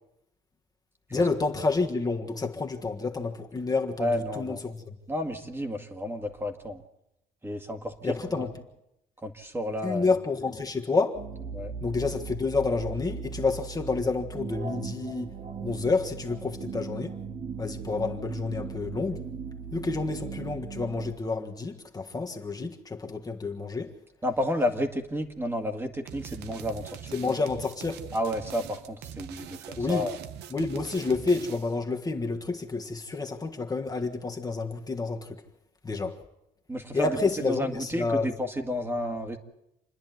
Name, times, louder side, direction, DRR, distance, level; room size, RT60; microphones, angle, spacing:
voice 1, 1.1-4.9 8.0-8.5 9.8-11.3 11.8-15.3 15.6-17.2 17.6-19.2 19.7-23.9 27.1-28.1 29.8-30.1 30.5-35.4 35.8-36.2 36.9-38.3, left 3 dB, 20° left, 1.6 m, -29 dB
voice 2, 4.0-4.6 5.1-6.8 7.4-8.5 9.2-10.1 11.5-11.7 24.2-27.1 28.1-30.2 36.7-39.4, left 1 dB, 15° right, 1.9 m, -31 dB
sound 1, 11.1-21.1, right 6 dB, 40° right, 1.7 m, -38 dB
sound 2, 26.1-31.8, right 9 dB, 85° right, 1.1 m, -43 dB
28.0 x 10.5 x 9.3 m
cardioid pair, 110°, 17 cm